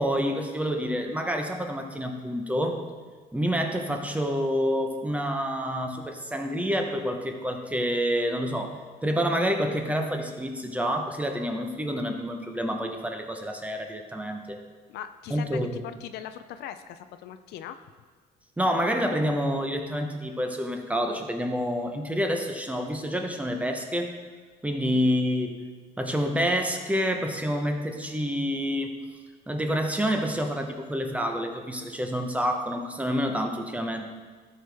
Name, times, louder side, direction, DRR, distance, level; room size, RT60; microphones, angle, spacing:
voice 1, 0.0-2.8 3.3-14.6 15.3-15.8 18.6-24.1 24.6-25.6 26.0-29.0 29.5-34.1, equal, 10° right, 4 dB, 0.9 m, -28 dB
voice 2, 14.9-17.8 24.9-25.2, left 10 dB, 75° left, 10 dB, 0.5 m, -40 dB
13.5 x 4.8 x 3.4 m, 1.5 s
cardioid pair, 110°, 17 cm